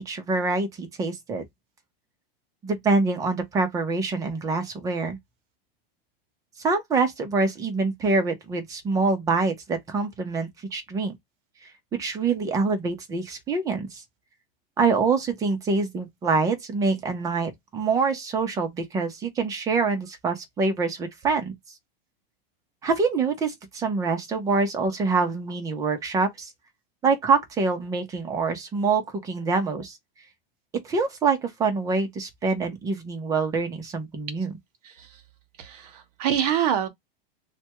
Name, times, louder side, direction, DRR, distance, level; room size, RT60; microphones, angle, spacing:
voice 1, 0.1-1.4 2.6-5.2 6.6-11.1 11.9-14.0 14.8-21.5 22.8-26.5 27.0-30.0 30.8-34.6, right 4 dB, 10° right, 0.6 m, -25 dB
voice 2, 35.6-36.9, right 9 dB, 40° right, 0.9 m, -26 dB
3.3 x 2.2 x 2.9 m
supercardioid pair, 165°, 30 cm